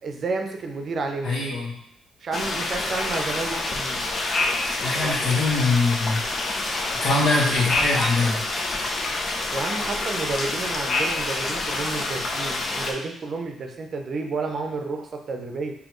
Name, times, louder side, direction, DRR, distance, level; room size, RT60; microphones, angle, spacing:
voice 1, 0.0-1.5 2.2-4.0 4.9-5.2 9.5-15.7, right 3 dB, 50° right, 4 dB, 0.6 m, -31 dB
voice 2, 1.2-1.7 4.8-6.2 7.0-8.4, left 3 dB, 70° left, -5 dB, 1.4 m, -22 dB
sound 1, 2.3-12.9, left 2 dB, 45° left, 0.6 m, -27 dB
4.2 x 2.8 x 3.1 m, 0.75 s
cardioid pair, 90°, 0 cm